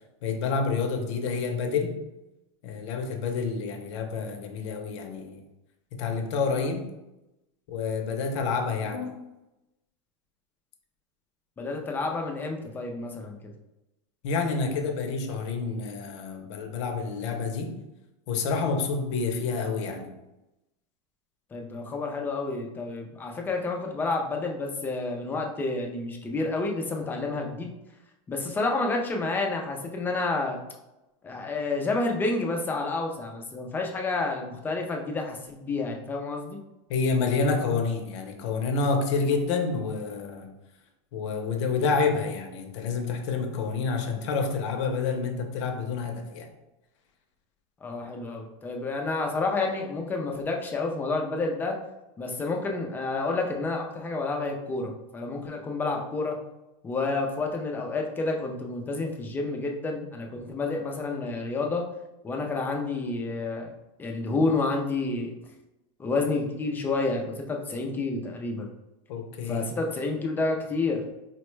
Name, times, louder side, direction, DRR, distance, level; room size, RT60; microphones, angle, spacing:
voice 1, 0.2-2.0 2.6-5.4 5.9-6.9 7.7-9.2 14.2-17.8 18.3-20.1 36.9-40.5 41.1-46.5 69.1-69.7, left 4 dB, 60° left, 5 dB, 0.6 m, -28 dB
voice 2, 11.6-13.5 21.5-27.7 28.3-30.6 31.2-36.6 47.8-51.7 52.2-56.4 56.8-61.9 62.2-63.7 64.0-65.3 66.0-68.7 69.5-71.0, left 3 dB, 10° left, 2 dB, 0.4 m, -29 dB
4.1 x 2.1 x 3.1 m, 0.96 s
supercardioid pair, 150°, 17 cm